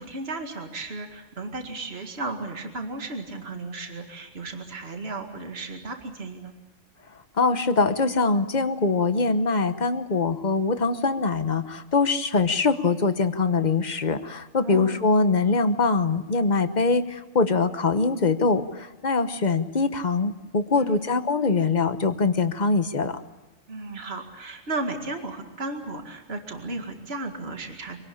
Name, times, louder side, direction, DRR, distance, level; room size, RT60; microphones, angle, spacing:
voice 1, 0.0-6.5 14.6-15.0 20.7-21.1 23.7-28.0, right 2 dB, 50° right, 4 dB, 2.3 m, -34 dB
voice 2, 7.4-23.2, left 4 dB, 35° left, 10 dB, 1.1 m, -23 dB
25.0 x 18.5 x 8.7 m, 1.1 s
omnidirectional pair, 1.4 m